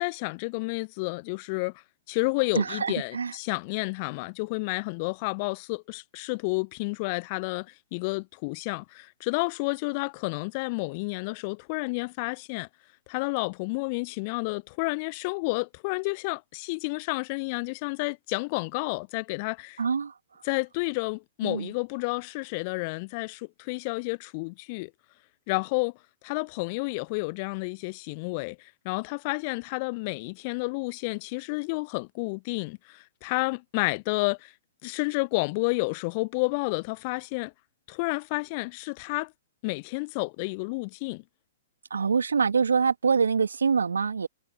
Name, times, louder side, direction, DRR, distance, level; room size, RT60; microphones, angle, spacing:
voice 1, 0.0-1.7 2.1-12.7 13.1-19.8 20.4-24.9 25.5-25.9 26.2-34.5 34.8-37.5 37.9-39.3 39.6-41.2, left 28 dB, 35° left, 0.7 m, -30 dB
voice 2, 2.6-3.3 19.8-20.1 21.4-21.7 41.9-44.3, right 5 dB, 70° right, 2.2 m, -25 dB
figure-of-eight pair, 115°, 0 cm